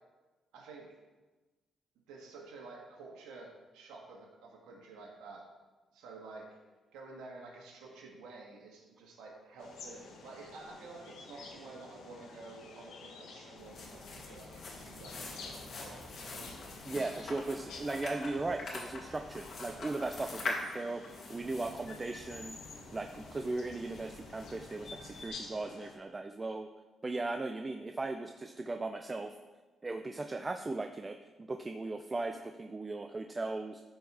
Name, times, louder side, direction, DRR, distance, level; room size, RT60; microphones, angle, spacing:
voice 1, 0.5-1.0 2.1-5.5 5.9-6.6 6.9-16.6, right 3 dB, 90° right, -1 dB, 1.6 m, -50 dB
sound 1, 9.6-25.9, left 4 dB, 80° left, 1.4 m, -51 dB
sound 2, 13.6-25.3, left 3 dB, 60° left, 2.4 m, -44 dB
voice 2, 16.9-22.6 22.9-26.7 27.0-29.3 29.8-33.8, right 2 dB, 30° right, 6 dB, 0.6 m, -37 dB
13.0 x 4.5 x 4.9 m, 1.2 s
supercardioid pair, 65°, 0 cm